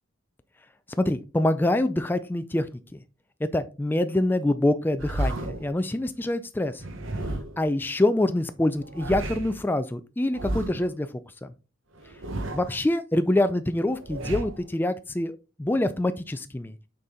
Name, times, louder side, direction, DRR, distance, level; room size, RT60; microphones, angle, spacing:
voice 1, 1.0-2.7 2.9-3.0 3.4-6.8 7.6-11.1 11.4-11.5 12.5-16.7, left 1 dB, 10° left, 10 dB, 0.3 m, -25 dB
sound 1, 5.0-5.7 6.8-7.7 8.7-9.6 10.3-10.9 12.0-12.8 13.8-14.7, right 1 dB, 80° right, 1.0 m, -33 dB
6.6 x 4.2 x 3.6 m, 0.32 s
head